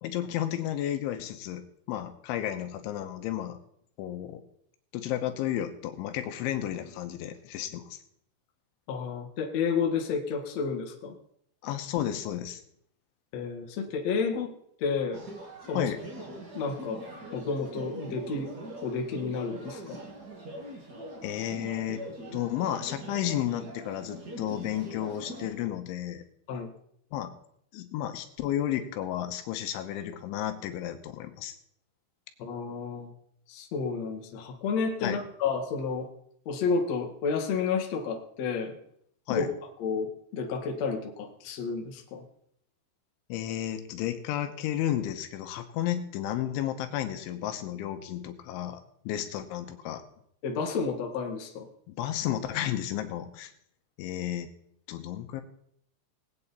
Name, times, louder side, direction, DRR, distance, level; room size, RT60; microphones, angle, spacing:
voice 1, 0.0-3.6 4.0-4.4 4.9-8.0 11.6-12.6 15.7-16.0 21.2-22.0 22.3-26.2 27.1-27.3 27.7-31.5 35.0-35.2 39.3-39.5 43.3-48.8 49.1-50.0 51.9-53.5 54.0-54.5 54.9-55.4, left 11 dB, 80° left, 7 dB, 3.3 m, -32 dB
voice 2, 8.9-11.2 13.3-14.5 14.8-15.2 15.7-15.9 16.5-17.0 17.3-18.5 18.8-20.0 26.5-26.7 32.4-33.1 33.5-36.1 36.5-38.8 39.3-39.5 39.8-42.2 50.4-51.7, left 5 dB, 55° left, 2 dB, 1.9 m, -31 dB
sound 1, 15.1-25.5, right 1 dB, 55° right, 1.0 m, -42 dB
21.0 x 8.8 x 4.2 m, 0.69 s
omnidirectional pair, 5.6 m